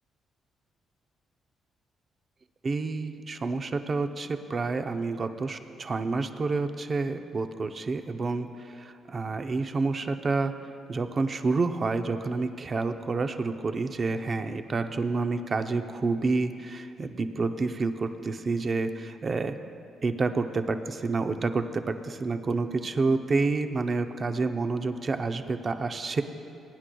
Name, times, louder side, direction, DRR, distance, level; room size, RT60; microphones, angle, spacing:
voice 1, 2.6-10.5 10.9-19.6 20.0-26.2, right 3 dB, 40° right, 8 dB, 0.6 m, -29 dB
22.5 x 9.8 x 2.3 m, 2.6 s
cardioid pair, 90°, 0 cm